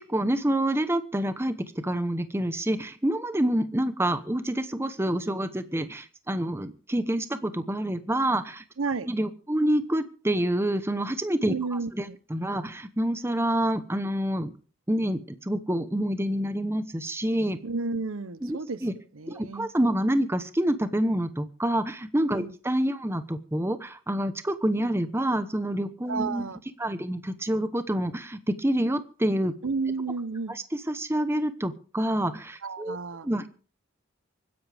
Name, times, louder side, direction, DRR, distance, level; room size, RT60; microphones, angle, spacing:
voice 1, 0.0-8.6 9.1-11.5 12.0-14.5 14.9-17.6 18.4-18.9 19.3-26.4 26.8-29.5 30.9-33.0 33.2-33.5, right 1 dB, 10° right, 10 dB, 0.9 m, -27 dB
voice 2, 8.8-9.1 11.5-12.2 17.6-18.8 19.1-19.7 22.4-22.5 26.1-26.6 29.6-30.6 32.6-33.3, right 4 dB, 80° right, 16 dB, 0.8 m, -31 dB
24.5 x 10.5 x 3.5 m, 0.40 s
head